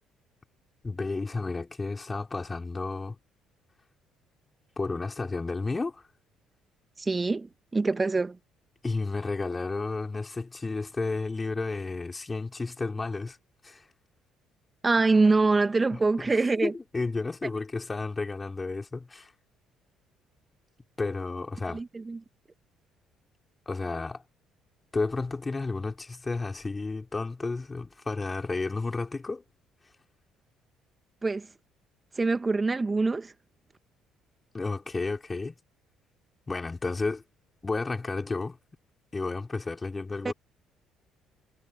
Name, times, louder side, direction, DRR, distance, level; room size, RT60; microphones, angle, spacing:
voice 1, 0.8-3.2 4.8-6.0 8.8-13.4 13.6-13.8 15.9-16.4 16.6-19.3 21.0-21.8 23.7-24.2 24.9-29.4 34.5-35.5 36.5-37.2 37.6-38.6 39.1-40.3, left 3 dB, 25° left, 4.9 m, -32 dB
voice 2, 7.0-8.4 14.8-16.7 21.7-22.2 31.2-31.5 32.1-33.3 40.2-40.3, right 3 dB, 25° right, 1.5 m, -24 dB
hypercardioid pair, 50°, 0 cm